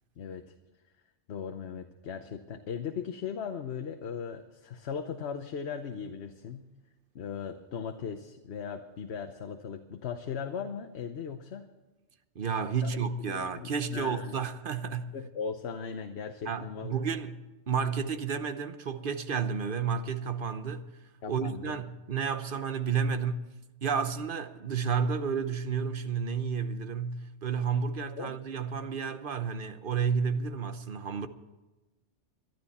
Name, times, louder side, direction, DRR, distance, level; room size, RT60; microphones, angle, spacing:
voice 1, 0.2-0.5 1.3-6.7 7.1-11.6 12.8-14.4 15.1-17.0 21.2-21.8 28.2-28.4, left 6 dB, 65° left, 1.1 m, -38 dB
voice 2, 12.3-15.1 16.5-20.9 21.3-23.5 23.8-31.3, right 6 dB, 50° right, 1.0 m, -31 dB
22.5 x 12.5 x 4.2 m
omnidirectional pair, 1.2 m